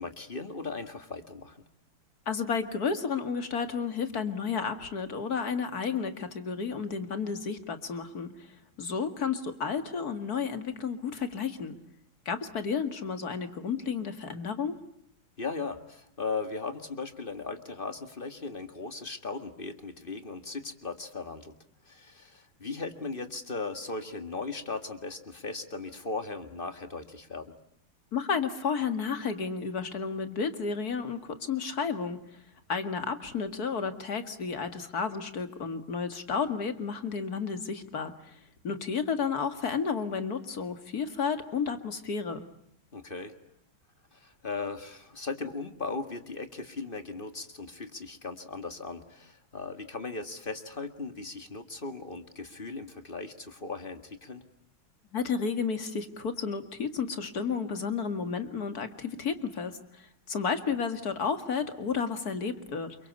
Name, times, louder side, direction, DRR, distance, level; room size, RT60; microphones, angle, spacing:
voice 1, 0.0-1.6 15.4-21.5 21.9-27.5 42.9-43.3 44.1-54.4, left 3 dB, 25° left, 8 dB, 1.9 m, -38 dB
voice 2, 2.3-8.5 8.8-11.8 12.3-14.8 28.1-32.2 32.7-38.4 38.6-42.4 55.1-63.0, left 5 dB, 45° left, 9 dB, 2.4 m, -32 dB
29.0 x 24.0 x 8.3 m, 0.71 s
omnidirectional pair, 2.3 m